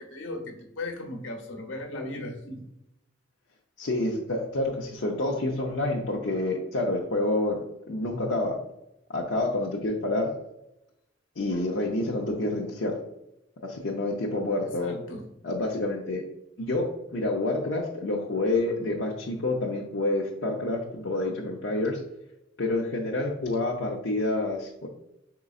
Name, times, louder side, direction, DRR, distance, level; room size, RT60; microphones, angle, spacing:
voice 1, 0.0-2.6 14.8-15.2, left 2 dB, 85° left, 2 dB, 0.9 m, -37 dB
voice 2, 3.8-8.6 9.1-10.3 11.4-13.0 13.6-15.0 15.4-16.2 16.6-22.0 22.6-24.9, left 2 dB, 70° left, -2 dB, 0.6 m, -28 dB
5.0 x 3.8 x 2.4 m, 0.86 s
head